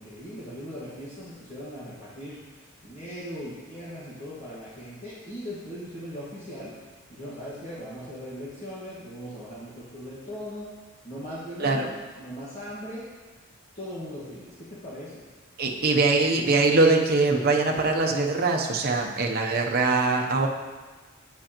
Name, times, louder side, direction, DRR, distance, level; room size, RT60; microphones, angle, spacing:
voice 1, 0.0-6.8 7.1-10.7 11.0-11.9 12.2-13.1 13.7-15.2, equal, 30° left, -10 dB, 1.6 m, -39 dB
voice 2, 15.6-20.5, right 3 dB, 45° right, 1 dB, 0.8 m, -22 dB
8.8 x 7.4 x 3.0 m, 1.3 s
head